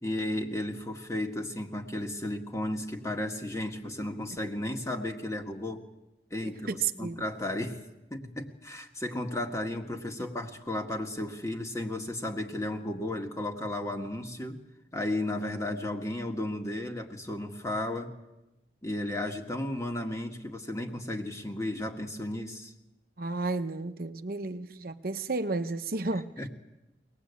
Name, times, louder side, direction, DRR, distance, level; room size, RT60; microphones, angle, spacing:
voice 1, 0.0-5.8 6.3-7.8 8.1-14.6 14.9-18.2 18.8-22.7 26.4-26.5, left 1 dB, 15° left, 1.9 m, -34 dB
voice 2, 6.4-7.2 23.2-26.5, right 3 dB, 55° right, 0.9 m, -32 dB
24.0 x 19.0 x 8.4 m
head